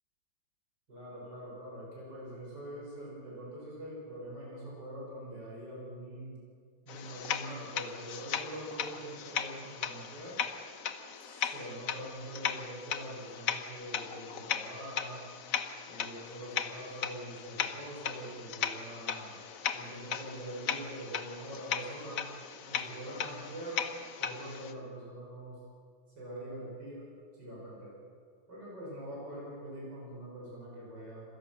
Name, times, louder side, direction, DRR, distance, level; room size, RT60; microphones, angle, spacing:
voice 1, 0.9-6.4 6.9-10.4 11.1-15.3 15.9-19.3 19.7-22.3 22.7-23.8 24.2-25.6 26.2-28.0 28.5-31.2, right 1 dB, 65° right, -5 dB, 6.8 m, -44 dB
sound 1, 6.9-24.7, left 7 dB, 55° left, 1.2 m, -37 dB
26.0 x 16.5 x 6.0 m, 2.1 s
omnidirectional pair, 2.1 m